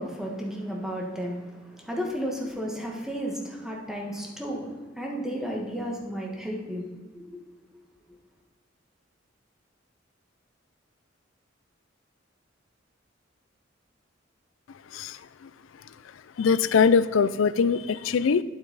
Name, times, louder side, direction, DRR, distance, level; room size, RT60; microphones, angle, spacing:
voice 1, 0.0-6.8 7.1-7.4, equal, 5° right, -2 dB, 1.4 m, -33 dB
voice 2, 14.9-15.5 16.4-18.4, left 6 dB, 85° left, 16 dB, 0.4 m, -22 dB
8.9 x 7.9 x 4.0 m, 1.3 s
head